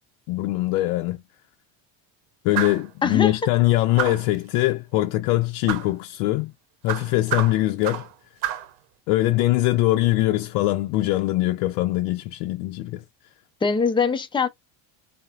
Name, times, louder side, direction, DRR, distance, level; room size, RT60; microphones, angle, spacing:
voice 1, 0.3-1.2 2.4-6.5 6.8-8.1 9.1-13.0, left 17 dB, 90° left, 0.6 m, -22 dB
sound 1, 2.5-2.9 4.0-4.4 5.7-5.9 6.9-8.1 8.4-8.7, right 11 dB, 85° right, 0.8 m, -29 dB
voice 2, 3.0-3.3 13.6-14.5, left 5 dB, 10° left, 0.5 m, -22 dB
3.9 x 2.2 x 2.3 m
supercardioid pair, 110°, 50 cm